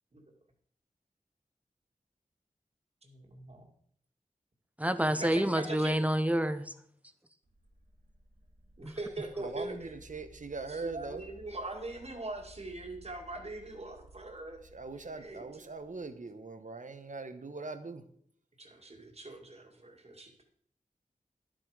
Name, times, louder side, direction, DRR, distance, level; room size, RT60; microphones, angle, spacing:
voice 1, 3.0-3.7 5.1-6.0 8.8-9.9 10.7-14.6 15.2-15.7 18.6-20.4, right 2 dB, 45° right, 2 dB, 2.1 m, -42 dB
voice 2, 4.8-6.7 8.8-8.9, right 1 dB, 10° right, 11 dB, 0.8 m, -28 dB
sound 1, 7.4-16.2, equal, 90° right, 3.2 m, -58 dB
voice 3, 9.4-11.2 14.7-18.0, right 3 dB, 60° right, 9 dB, 1.1 m, -41 dB
11.5 x 7.6 x 5.0 m, 0.63 s
wide cardioid pair, 80°, 14 cm